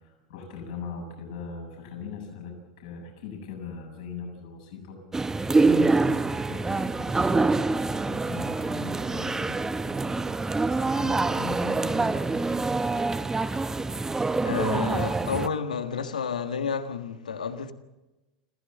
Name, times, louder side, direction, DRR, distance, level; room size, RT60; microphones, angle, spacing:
voice 1, 0.0-10.2 10.8-12.9, left 5 dB, 70° left, 7.4 m, -40 dB
sound 1, 5.1-15.5, right 3 dB, 15° right, 0.9 m, -25 dB
voice 2, 14.4-17.7, left 6 dB, 90° left, 1.5 m, -30 dB
27.0 x 15.5 x 7.5 m
hypercardioid pair, 90°, 4 cm